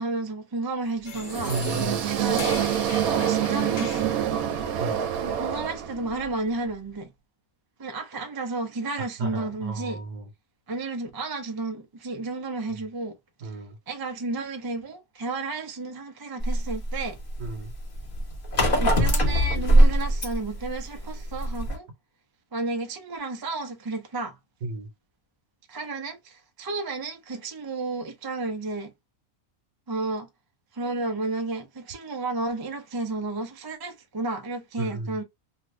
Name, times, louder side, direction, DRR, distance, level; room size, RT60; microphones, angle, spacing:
voice 1, 0.0-1.5 2.1-2.6 3.2-4.2 5.2-7.1 7.8-10.0 10.7-13.2 13.4-13.5 13.9-17.2 18.8-21.9 22.5-24.4 25.7-28.9 29.9-30.3 30.7-35.2, right 3 dB, 35° right, 0.3 m, -32 dB
sound 1, 1.0-4.1, left 6 dB, 65° left, 1.1 m, -40 dB
sound 2, 1.1-6.3, right 9 dB, 85° right, 1.1 m, -26 dB
voice 2, 1.5-2.1 4.8-5.1 9.0-10.3 13.4-13.8 17.4-17.7 24.6-24.9 34.8-35.2, right 2 dB, 65° right, 1.3 m, -33 dB
sound 3, 16.4-21.8, right 1 dB, 40° left, 1.2 m, -22 dB
2.9 x 2.6 x 3.1 m
omnidirectional pair, 1.5 m